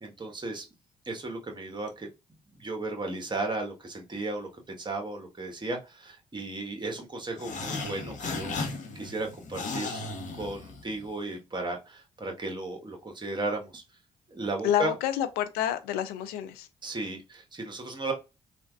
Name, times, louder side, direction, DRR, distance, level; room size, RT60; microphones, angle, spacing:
voice 1, 0.0-0.6 1.1-2.1 2.6-10.1 10.4-13.8 14.3-14.9 16.8-18.1, right 2 dB, 30° right, 1.3 m, -35 dB
sound 1, 7.4-11.1, left 3 dB, 55° left, 0.9 m, -36 dB
voice 2, 14.6-16.7, left 11 dB, 80° left, 0.4 m, -28 dB
3.2 x 2.5 x 2.3 m
hypercardioid pair, 50°, 15 cm